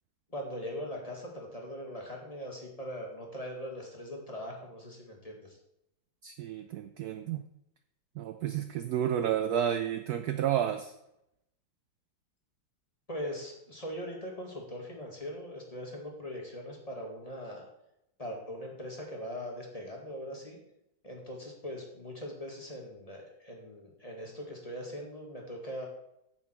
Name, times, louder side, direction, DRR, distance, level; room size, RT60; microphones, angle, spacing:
voice 1, 0.3-5.6 13.1-17.7 18.2-20.6 21.0-25.9, equal, 20° left, -1 dB, 1.8 m, -41 dB
voice 2, 6.2-7.5 8.2-10.9, right 10 dB, 70° right, 9 dB, 0.9 m, -31 dB
8.6 x 8.4 x 4.4 m, 0.82 s
omnidirectional pair, 2.0 m